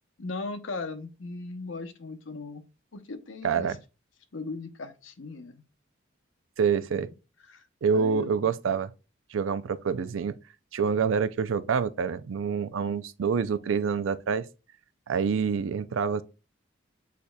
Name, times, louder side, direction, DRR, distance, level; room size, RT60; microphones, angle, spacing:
voice 1, 0.2-2.6 2.9-3.8 4.3-5.6 7.5-7.7 7.9-8.5, left 3 dB, 80° left, 0.7 m, -38 dB
voice 2, 3.4-3.8 6.6-7.1 7.8-8.9 9.3-10.4 10.7-14.4 15.1-16.2, right 6 dB, 85° right, 0.4 m, -27 dB
8.2 x 2.8 x 2.2 m
head